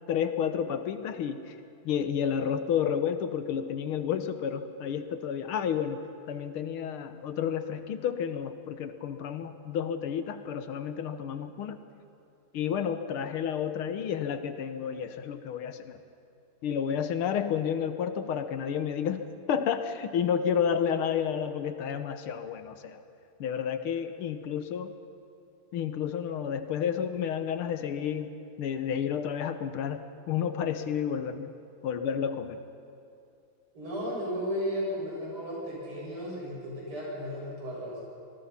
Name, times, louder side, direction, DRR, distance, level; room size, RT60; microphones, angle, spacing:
voice 1, 0.1-1.6 1.8-11.8 12.5-16.0 16.6-23.0 23.4-24.9 25.7-31.5 31.8-32.6, left 8 dB, 80° left, 10 dB, 1.9 m, -31 dB
voice 2, 33.7-38.0, equal, 75° right, -4 dB, 7.9 m, -34 dB
26.5 x 20.0 x 5.8 m, 2.5 s
omnidirectional pair, 2.4 m